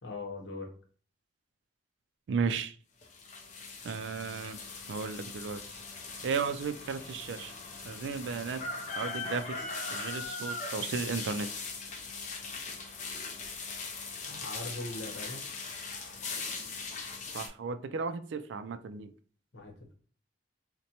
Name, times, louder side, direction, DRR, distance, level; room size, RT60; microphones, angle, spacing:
voice 1, 0.0-0.7 14.2-15.4 19.5-19.9, left 2 dB, 75° left, 2 dB, 0.9 m, -40 dB
voice 2, 2.3-2.7 3.8-4.6 4.9-5.6 6.2-7.5 7.8-8.6 9.0-9.6 9.9-11.5 17.3-19.1, right 5 dB, 70° right, 11 dB, 0.3 m, -34 dB
sound 1, 3.0-17.5, left 4 dB, 40° left, 0.6 m, -40 dB
4.1 x 2.1 x 2.8 m, 0.43 s
head